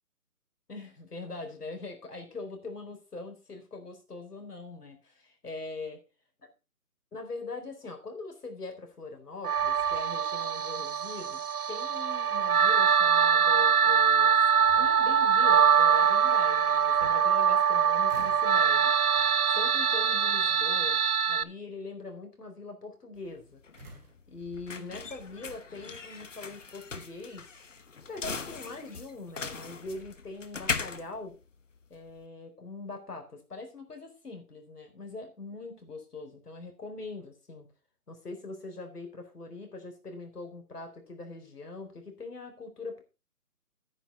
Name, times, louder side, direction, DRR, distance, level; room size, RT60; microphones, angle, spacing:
voice 1, 0.7-6.0 7.1-11.4 11.7-14.4 14.8-18.9 19.5-21.0 21.3-23.6 24.3-27.4 28.1-31.4 31.9-37.7 38.1-43.0, left 3 dB, 85° left, 4 dB, 4.2 m, -42 dB
sound 1, 8.9-9.2 9.5-10.5 10.9-11.0 13.7-13.8 14.4-15.3 16.6-17.7 18.1-18.6 19.1-19.5 20.3-20.8 23.8-25.6, right 1 dB, 10° right, 1.7 m, -52 dB
sound 2, 9.4-21.4, right 7 dB, 75° right, 0.9 m, -24 dB
sound 3, 23.2-32.2, left 5 dB, 55° left, 1.2 m, -39 dB
10.0 x 9.3 x 4.3 m, 0.31 s
hypercardioid pair, 175°, 45 cm